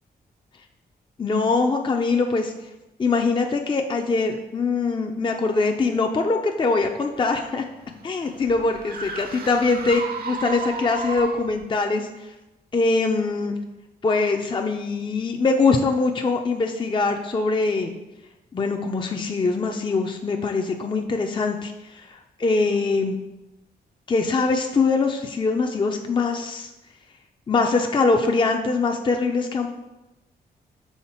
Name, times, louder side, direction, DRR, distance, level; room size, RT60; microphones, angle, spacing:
voice 1, 1.2-2.7 3.0-7.6 8.0-12.3 12.7-13.5 14.0-17.9 18.5-23.2 24.1-26.7 27.5-29.7, left 3 dB, 30° left, 4 dB, 0.5 m, -23 dB
sound 1, 7.1-11.7, right 4 dB, 60° right, 0.8 m, -34 dB
5.7 x 3.9 x 4.3 m, 1.0 s
cardioid pair, 70°, 17 cm